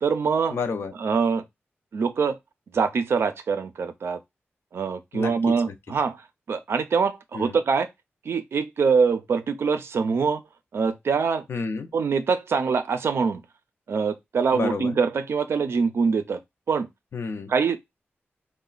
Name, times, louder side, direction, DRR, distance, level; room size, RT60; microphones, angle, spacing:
voice 1, 0.0-0.6 1.0-1.4 1.9-2.4 2.7-4.2 4.7-7.9 8.2-10.4 10.7-11.5 11.9-13.4 13.9-16.4 16.7-16.9 17.5-17.8, right 5 dB, 70° right, 0.4 m, -24 dB
voice 2, 0.5-0.9 5.1-5.3 7.3-7.6 11.5-11.9 14.5-15.0 17.1-17.5, left 4 dB, 70° left, 0.5 m, -29 dB
3.9 x 2.1 x 2.3 m
wide cardioid pair, 175°, 4 cm